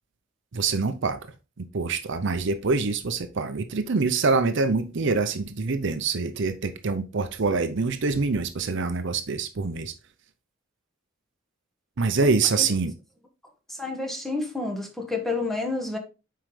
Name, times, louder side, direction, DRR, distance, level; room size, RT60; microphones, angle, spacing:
voice 1, 0.5-1.2 1.6-9.9 12.0-12.9, right 4 dB, 60° right, 0.6 m, -25 dB
voice 2, 13.7-16.0, left 3 dB, ahead, 1.2 m, -30 dB
7.6 x 4.7 x 3.2 m
head